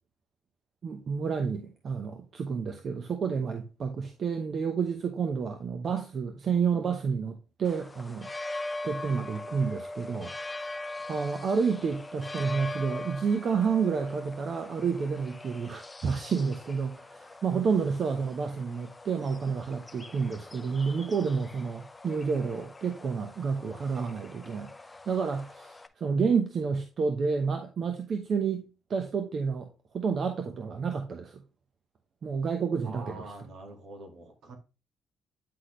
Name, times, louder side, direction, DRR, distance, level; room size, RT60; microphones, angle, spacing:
voice 1, 0.8-8.3 8.8-10.7 11.1-29.7 29.9-31.4 32.2-33.2, right 5 dB, 55° right, 0.9 m, -30 dB
sound 1, 7.6-25.9, left 2 dB, 20° left, 0.6 m, -42 dB
voice 2, 32.8-34.6, right 2 dB, 70° right, 1.9 m, -45 dB
9.6 x 4.1 x 3.2 m
cardioid pair, 90°, 0 cm